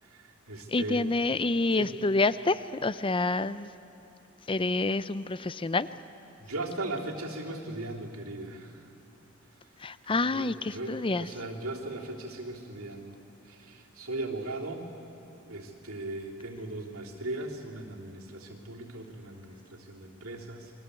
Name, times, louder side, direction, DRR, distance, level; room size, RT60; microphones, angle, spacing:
voice 1, 0.0-1.0 1.8-1.9 6.4-8.9 10.3-13.2 13.4-14.8 15.5-20.7, right 2 dB, 90° right, -1 dB, 3.3 m, -38 dB
voice 2, 0.7-3.7 4.5-5.9 9.8-11.3, left 3 dB, 25° left, 15 dB, 0.5 m, -28 dB
29.0 x 22.0 x 8.3 m, 2.9 s
head